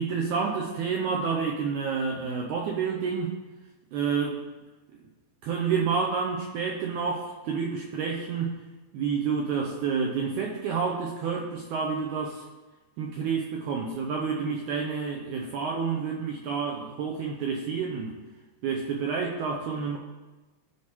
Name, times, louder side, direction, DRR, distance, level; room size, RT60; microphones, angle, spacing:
voice 1, 0.0-3.3 3.9-4.4 5.4-8.5 8.9-12.5 13.0-18.2 18.6-20.0, right 5 dB, 85° right, -1 dB, 1.7 m, -29 dB
12.5 x 4.8 x 2.9 m, 1.2 s
omnidirectional pair, 4.2 m